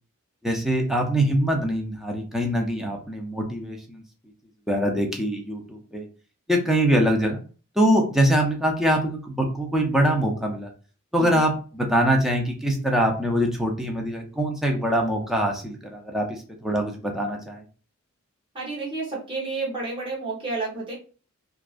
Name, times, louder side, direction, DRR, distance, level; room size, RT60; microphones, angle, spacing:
voice 1, 0.4-4.0 4.7-6.1 6.5-7.4 7.8-10.7 11.1-17.6, right 1 dB, ahead, 1 dB, 0.4 m, -23 dB
voice 2, 18.5-20.9, right 3 dB, 25° right, -5 dB, 0.9 m, -30 dB
2.3 x 2.2 x 2.4 m, 0.38 s
head